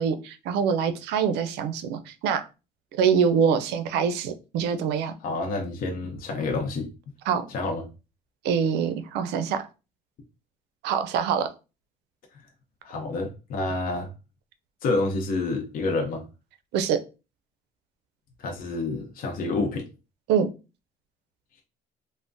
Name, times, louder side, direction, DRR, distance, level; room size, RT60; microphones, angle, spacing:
voice 1, 0.0-2.4 3.0-5.1 7.3-7.4 8.4-9.7 10.8-11.5 16.7-17.0 20.3-20.5, right 7 dB, 85° right, 0.4 m, -24 dB
voice 2, 5.2-6.9 7.5-7.8 12.8-14.1 14.8-16.2 18.4-19.8, left 3 dB, 55° left, 0.7 m, -28 dB
3.4 x 2.1 x 2.5 m
cardioid pair, 110°, 17 cm